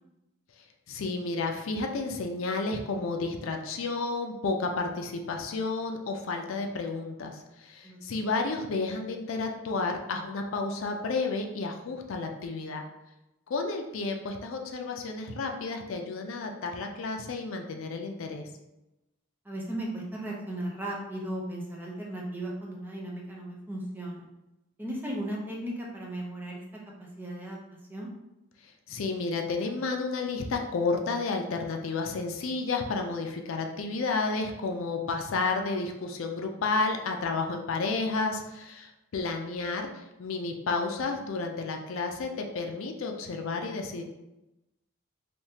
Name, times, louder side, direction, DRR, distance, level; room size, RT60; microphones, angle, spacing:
voice 1, 0.9-12.9 13.5-18.5 28.9-44.0, left 3 dB, 75° left, 4 dB, 0.4 m, -31 dB
voice 2, 7.8-8.2 19.4-24.3 24.8-26.6 27.0-27.6 27.9-28.1, right 1 dB, 10° right, -3 dB, 0.6 m, -36 dB
3.5 x 2.7 x 2.8 m, 0.96 s
head